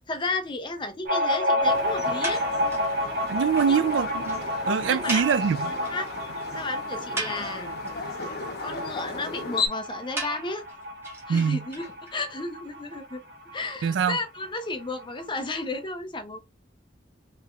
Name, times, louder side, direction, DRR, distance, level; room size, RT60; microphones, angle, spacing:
voice 1, 0.1-2.4 3.7-3.8 4.9-5.3 5.9-6.1 6.5-7.6 8.6-10.6 11.3-13.2 13.5-16.4, left 2 dB, 25° left, 0.6 m, -33 dB
sound 1, 1.1-14.2 14.5-14.6 14.8-15.6, left 1 dB, 65° right, 1.3 m, -30 dB
sound 2, 1.6-9.7, left 4 dB, 60° left, 0.8 m, -36 dB
sound 3, 2.2-2.9 3.3-3.4 3.6-3.7 4.0-4.1 4.2-4.4 5.1-6.1 6.4-6.5 6.9-7.9 10.2-12.1, right 2 dB, 15° right, 1.2 m, -35 dB
voice 2, 3.3-5.7 11.3-11.6 13.8-14.2, right 7 dB, 85° right, 0.3 m, -24 dB
3.3 x 3.3 x 2.4 m
head